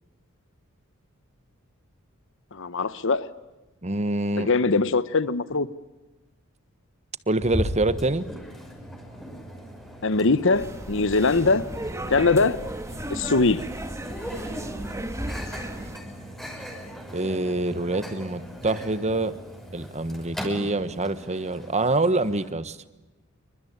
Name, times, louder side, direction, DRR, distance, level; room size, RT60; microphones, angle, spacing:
voice 1, 2.5-3.3 4.4-5.7 10.0-11.7 12.1-12.6 13.1-13.6, left 3 dB, 65° left, 15 dB, 1.1 m, -22 dB
voice 2, 3.8-4.5 7.3-8.3 17.1-19.3 19.7-22.8, right 2 dB, 30° right, 14 dB, 1.3 m, -25 dB
Microwave oven, 7.4-22.5, equal, ahead, 5.8 m, -38 dB
sound 1, 10.5-16.0, right 1 dB, 15° right, 1.9 m, -35 dB
28.0 x 24.5 x 8.8 m, 1.1 s
head